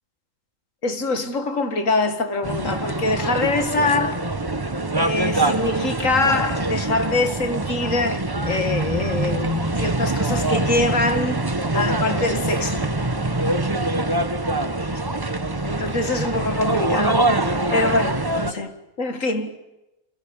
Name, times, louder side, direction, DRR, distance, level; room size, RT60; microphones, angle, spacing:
voice 1, 0.8-4.2 5.0-11.4 11.7-12.9 15.6-19.6, left 2 dB, 85° left, 2.5 m, -24 dB
sound 1, 2.4-18.5, right 2 dB, 20° right, 1.2 m, -24 dB
28.5 x 27.0 x 7.3 m
omnidirectional pair, 1.3 m